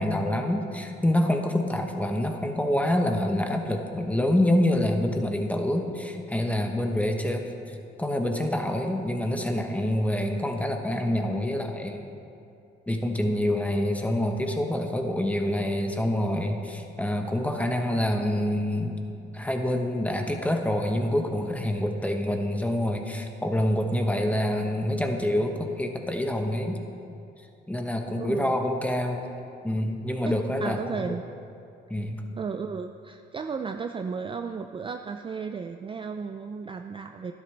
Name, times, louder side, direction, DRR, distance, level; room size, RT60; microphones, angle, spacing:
voice 1, 0.0-12.1 12.9-19.0 19.3-26.8 27.7-29.3 29.6-31.2 31.9-32.2, left 1 dB, 5° left, 3 dB, 1.1 m, -26 dB
voice 2, 28.1-28.6 30.6-31.2 32.4-37.3, right 5 dB, 25° right, 6 dB, 0.4 m, -34 dB
11.5 x 11.0 x 3.3 m, 2.6 s
cardioid pair, 90°, 20 cm